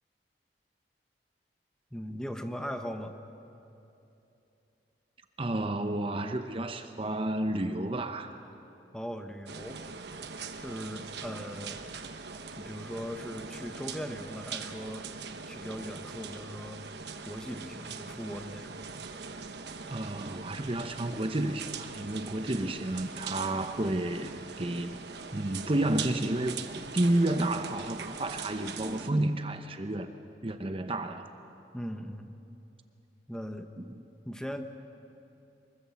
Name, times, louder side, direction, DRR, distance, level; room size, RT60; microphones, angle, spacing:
voice 1, 1.9-3.1 8.9-9.8 10.6-11.8 12.6-15.0 15.5-16.8 17.2-18.7 31.7-32.3 33.3-33.7 34.2-34.7, equal, 5° left, 6 dB, 1.1 m, -39 dB
voice 2, 5.4-8.4 19.9-25.0 25.3-30.1 30.4-31.3 33.8-34.0, right 1 dB, 30° right, 7 dB, 0.8 m, -31 dB
sound 1, 9.5-29.1, right 5 dB, 70° right, 1.1 m, -42 dB
24.5 x 22.5 x 7.2 m, 2.8 s
head